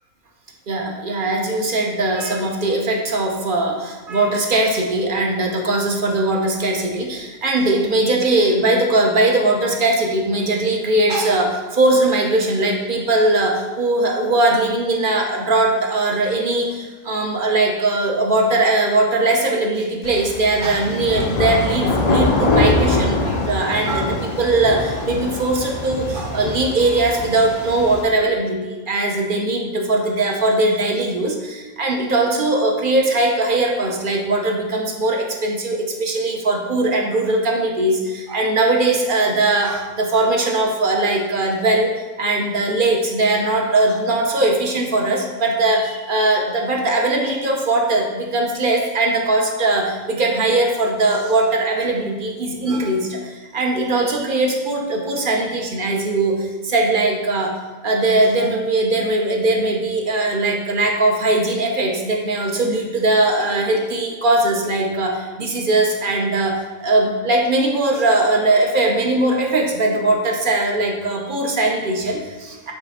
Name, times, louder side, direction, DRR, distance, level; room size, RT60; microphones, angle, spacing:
voice 1, 0.7-41.9 42.2-57.5 57.8-72.7, right 2 dB, 45° right, 1 dB, 0.8 m, -20 dB
sound 1, 20.0-28.0, left 2 dB, 55° left, 0.4 m, -23 dB
8.2 x 3.3 x 4.2 m, 1.2 s
omnidirectional pair, 1.6 m